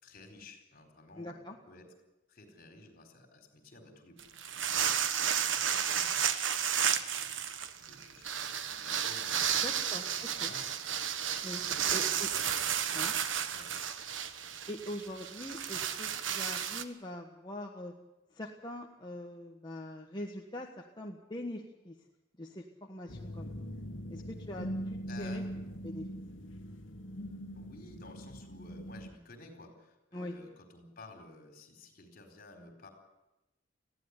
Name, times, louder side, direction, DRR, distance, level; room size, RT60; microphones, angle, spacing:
voice 1, 0.0-1.9 2.3-4.2 4.5-4.9 5.3-9.8 10.1-10.6 11.7-12.1 12.9-13.1 13.5-13.8 25.0-25.5 27.5-32.9, left 2 dB, 50° left, 5 dB, 4.4 m, -54 dB
voice 2, 1.2-1.6 9.6-10.5 11.4-11.6 11.9-12.3 12.9-13.1 14.7-17.9 18.3-22.0 22.4-23.5 24.1-25.4 25.8-26.1 30.1-30.3, left 1 dB, 25° left, 0 dB, 1.4 m, -43 dB
sound 1, 4.2-16.8, right 8 dB, 80° right, 1.2 m, -32 dB
sound 2, 23.1-29.1, equal, 85° left, 1.6 m, -41 dB
20.5 x 15.5 x 9.7 m, 0.96 s
head